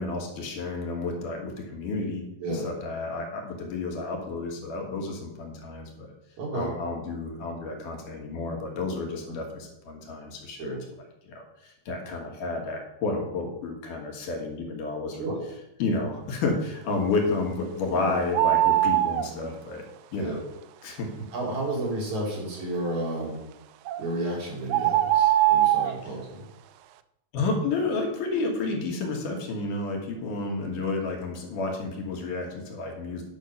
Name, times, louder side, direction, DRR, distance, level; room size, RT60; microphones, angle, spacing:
voice 1, 0.0-2.2 2.6-6.1 6.5-10.8 11.2-15.2 15.8-19.8 20.1-20.4 20.8-21.3 27.3-33.2, left 3 dB, 70° left, 1 dB, 3.1 m, -31 dB
voice 2, 6.4-6.7 9.3-9.4 10.6-10.8 15.2-15.4 17.9-18.1 20.2-20.4 20.9-21.0 21.3-23.4 24.0-26.5, right 1 dB, 60° right, -3 dB, 3.9 m, -32 dB
sound 1, 18.3-19.3 23.9-24.0 24.7-26.0, right 14 dB, 85° right, 1.6 m, -21 dB
10.5 x 6.4 x 5.4 m, 0.86 s
omnidirectional pair, 3.8 m